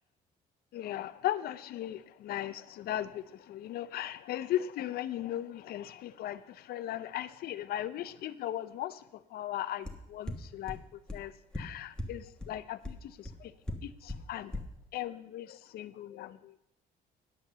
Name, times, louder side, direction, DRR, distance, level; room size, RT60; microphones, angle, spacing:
voice 1, 0.7-13.5 13.8-14.5 14.9-16.5, left 12 dB, 65° left, 14 dB, 0.6 m, -38 dB
sound 1, 9.9-10.0 10.3-10.4 10.7-10.8 11.1-11.2 11.5-11.6 12.0-12.1 12.4-12.5 12.8-12.9 13.2-13.3 13.7-13.8 14.1-14.2 14.5-14.6, left 1 dB, 5° left, 1.3 m, -35 dB
10.0 x 6.0 x 6.8 m, 0.81 s
cardioid pair, 110°, 17 cm